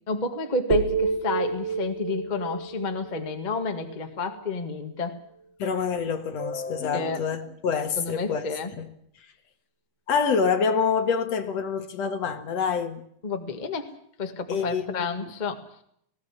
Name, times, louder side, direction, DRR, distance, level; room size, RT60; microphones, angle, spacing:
voice 1, 0.1-5.2 6.9-7.2 8.0-8.7 13.2-13.9 14.2-15.6, left 4 dB, 20° left, 1.4 m, -30 dB
sound 1, 0.7-4.8, right 5 dB, 45° right, 1.6 m, -30 dB
voice 2, 5.6-8.5 8.8-8.9 10.1-13.0 14.5-15.3, left 6 dB, 60° left, 2.5 m, -26 dB
20.0 x 17.0 x 9.9 m
omnidirectional pair, 3.5 m